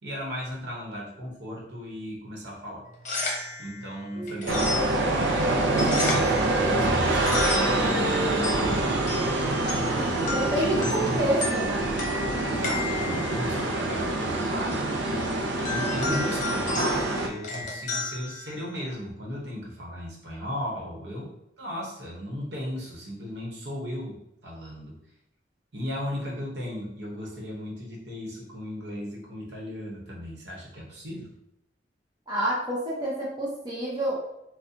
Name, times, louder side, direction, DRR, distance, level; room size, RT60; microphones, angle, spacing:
voice 1, 0.0-2.8 3.6-4.8 5.1-8.9 9.6-11.3 12.5-24.2 24.4-24.9 25.7-31.3, equal, 70° right, -3 dB, 1.0 m, -36 dB
sound 1, 2.9-19.1, left 3 dB, 45° left, 0.8 m, -35 dB
voice 2, 4.2-4.5 10.0-11.8 32.3-34.2, right 1 dB, 25° right, -6 dB, 0.6 m, -28 dB
sound 2, 4.5-17.3, right 2 dB, 90° right, 0.5 m, -26 dB
4.0 x 2.2 x 2.7 m, 0.82 s
head